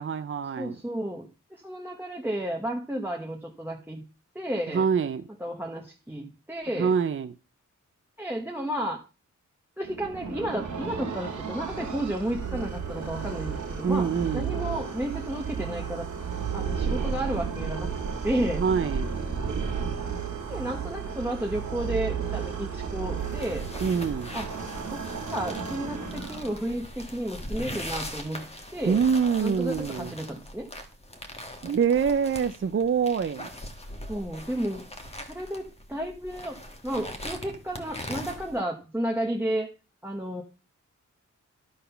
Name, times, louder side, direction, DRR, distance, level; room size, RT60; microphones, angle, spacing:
voice 1, 0.0-0.8 4.7-5.2 6.8-7.3 13.8-14.6 18.6-19.1 23.8-24.3 28.8-30.1 31.6-33.5, right 6 dB, 40° right, 0.5 m, -25 dB
voice 2, 0.6-4.0 4.3-4.9 5.4-6.9 8.2-9.0 9.8-16.1 16.5-17.9 18.2-18.6 20.5-23.7 24.3-24.5 24.9-25.1 25.3-28.5 28.7-29.0 29.4-30.7 34.1-34.9 35.3-36.6 36.8-39.7 40.0-40.4, right 1 dB, 5° right, 1.1 m, -32 dB
sound 1, 9.8-26.8, right 6 dB, 70° right, 1.8 m, -33 dB
sound 2, 23.2-38.6, left 1 dB, 20° left, 1.4 m, -41 dB
11.5 x 3.8 x 5.6 m
wide cardioid pair, 90°, 31 cm